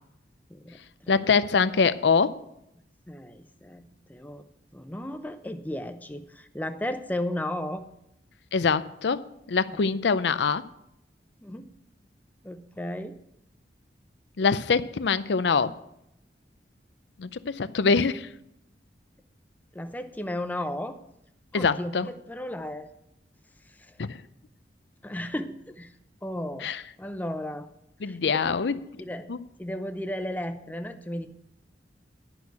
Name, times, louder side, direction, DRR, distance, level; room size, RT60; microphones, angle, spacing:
voice 1, 0.5-1.2 3.1-4.5 4.7-7.9 11.4-11.7 12.4-13.2 19.7-21.0 21.5-22.9 23.8-23.9 25.0-25.9 26.2-26.7 27.0-27.7 28.0-28.7 29.0-29.3 29.6-31.3, left 1 dB, 10° left, 0.6 m, -34 dB
voice 2, 1.1-2.4 8.5-10.6 14.4-15.8 17.2-18.3 21.5-22.1 24.0-24.2 26.6-26.8 28.0-28.8 29.3-29.4, left 5 dB, 80° left, 0.5 m, -24 dB
10.5 x 6.3 x 8.1 m
head